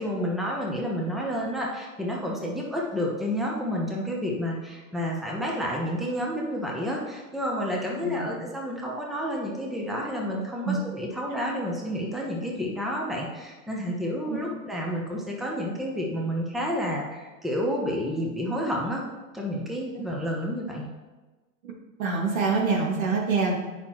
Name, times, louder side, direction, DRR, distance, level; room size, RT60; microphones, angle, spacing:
voice 1, 0.0-19.0 19.3-20.9, equal, ahead, -2 dB, 0.9 m, -30 dB
voice 2, 22.0-23.6, right 4 dB, 75° right, -1 dB, 2.1 m, -25 dB
8.4 x 5.8 x 3.0 m, 1.2 s
hypercardioid pair, 125°, 41 cm